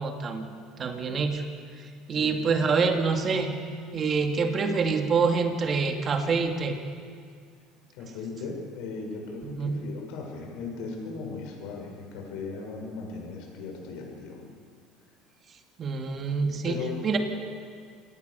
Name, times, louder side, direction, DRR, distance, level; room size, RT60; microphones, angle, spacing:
voice 1, 0.0-1.5 1.8-3.6 3.9-6.8 9.4-9.9 15.8-16.8 17.0-17.2, right 4 dB, 35° right, 4 dB, 2.5 m, -26 dB
voice 2, 2.1-2.4 7.9-14.4 16.4-17.2, left 4 dB, 70° left, 1 dB, 6.7 m, -37 dB
27.0 x 18.0 x 7.1 m, 2.1 s
supercardioid pair, 115°, 0 cm